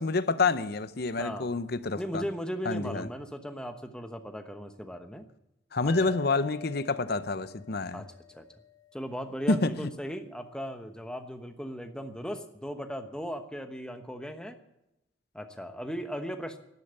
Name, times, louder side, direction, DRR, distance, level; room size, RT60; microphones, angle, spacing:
voice 1, 0.0-2.2 2.7-3.1 5.7-8.0 9.5-9.9, left 3 dB, 50° left, 0.7 m, -28 dB
voice 2, 1.2-1.5 2.0-5.3 5.8-6.2 7.9-8.5 8.9-14.6 15.3-16.6, equal, 5° left, 1.1 m, -37 dB
sound 1, 5.9-9.3, left 13 dB, 85° left, 1.3 m, -46 dB
12.0 x 12.0 x 8.1 m
head